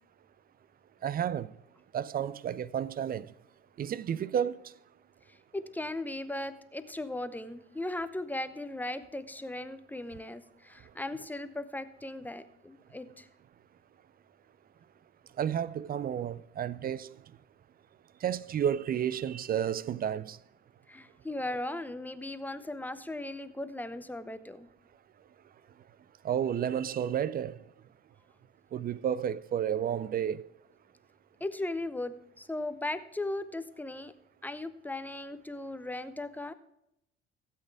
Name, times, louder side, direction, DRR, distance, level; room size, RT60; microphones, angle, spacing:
voice 1, 1.0-1.5 1.9-3.3 3.8-4.6 15.4-17.1 18.2-20.4 26.2-27.6 28.7-30.5, right 9 dB, 30° right, 0.4 m, -31 dB
voice 2, 5.3-13.3 20.9-24.7 31.4-34.1 34.4-36.5, left 2 dB, 5° left, 0.8 m, -37 dB
16.0 x 8.4 x 3.5 m
figure-of-eight pair, 55°, 31 cm